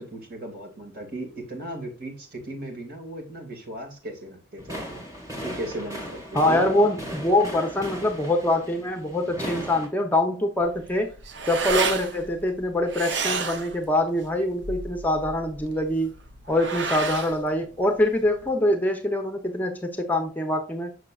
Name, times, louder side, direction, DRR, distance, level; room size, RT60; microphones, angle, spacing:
voice 1, 0.0-5.0 5.4-6.7, right 1 dB, 50° right, 2 dB, 2.2 m, -36 dB
sound 1, 4.6-9.9, equal, 20° right, 1.9 m, -37 dB
voice 2, 6.3-11.1 11.5-16.1 16.5-20.9, left 1 dB, 10° left, 4 dB, 0.7 m, -24 dB
sound 2, 10.6-18.5, right 4 dB, 70° right, 0.7 m, -32 dB
6.6 x 6.5 x 2.4 m, 0.34 s
head